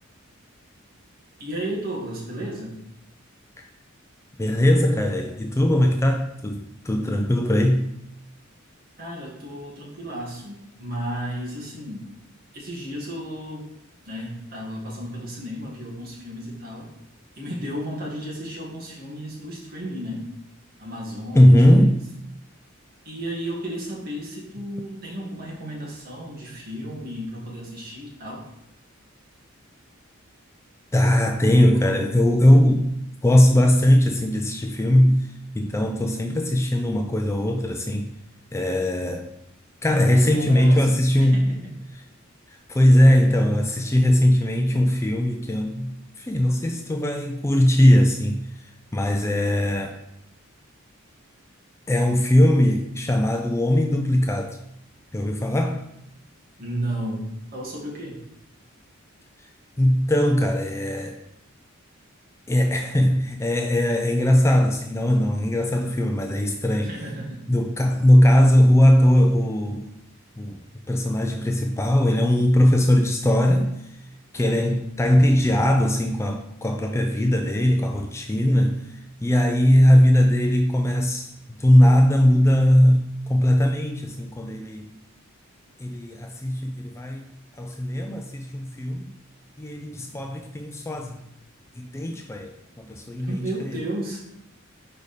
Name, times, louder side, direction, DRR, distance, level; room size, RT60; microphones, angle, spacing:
voice 1, 1.4-2.8 9.0-12.1 12.5-13.6 14.1-16.9 17.4-20.3 20.8-21.6 23.1-28.5 40.1-41.7 56.6-57.3 57.5-58.2 66.8-67.5 74.4-74.8 93.3-94.2, right 1 dB, 45° right, -4 dB, 1.7 m, -33 dB
voice 2, 4.4-7.9 21.3-22.0 30.9-33.0 33.2-38.1 38.5-39.3 39.8-41.5 42.7-50.0 51.9-54.6 55.1-55.8 59.8-61.2 62.5-66.9 67.5-69.9 70.4-70.6 70.9-73.9 74.3-84.9 85.8-89.1 89.6-91.2 91.7-93.8, left 1 dB, 15° left, 3 dB, 0.3 m, -20 dB
5.0 x 4.9 x 4.1 m, 0.78 s
head